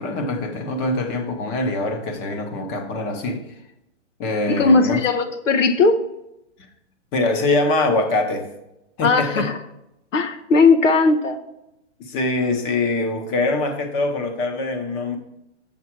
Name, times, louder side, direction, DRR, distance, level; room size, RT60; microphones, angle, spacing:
voice 1, 0.0-3.5 4.2-5.0 7.1-8.5 9.0-9.5 12.0-15.2, left 2 dB, 15° left, 5 dB, 0.7 m, -23 dB
voice 2, 4.5-6.0 9.0-9.6 10.1-11.4, left 3 dB, 90° left, 7 dB, 1.2 m, -17 dB
7.3 x 6.8 x 4.5 m, 0.87 s
hypercardioid pair, 160°, 37 cm